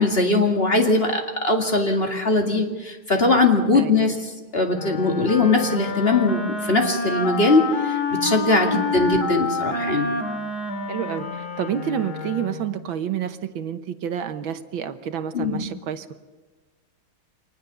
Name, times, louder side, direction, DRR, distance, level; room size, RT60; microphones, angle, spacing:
voice 1, 0.0-10.1 15.3-15.7, left 3 dB, 30° left, 3 dB, 2.4 m, -21 dB
voice 2, 3.8-4.1 10.9-16.2, right 9 dB, 75° right, 10 dB, 1.8 m, -29 dB
Wind instrument woodwind instrument, 4.7-12.8, left 3 dB, 50° left, 2.4 m, -28 dB
25.0 x 20.0 x 6.9 m, 1.3 s
omnidirectional pair, 2.2 m